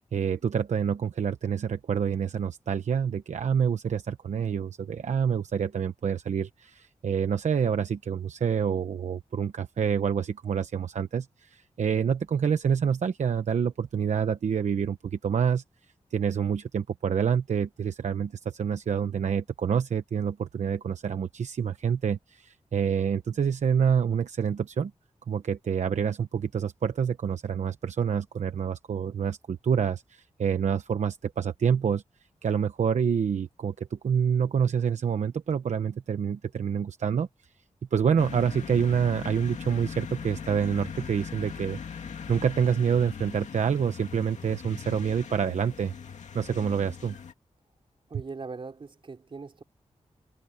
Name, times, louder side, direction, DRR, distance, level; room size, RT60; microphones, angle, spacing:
voice 1, 0.0-15.6 16.1-24.9 25.3-32.0 32.4-37.3 37.9-45.9 46.3-47.2, right 7 dB, 80° right, 1.0 m, -27 dB
sound 1, 38.2-47.3, left 6 dB, 85° left, 2.2 m, -40 dB
voice 2, 48.1-49.6, right 4 dB, 45° right, 4.3 m, -40 dB
wide cardioid pair, 140°, 12 cm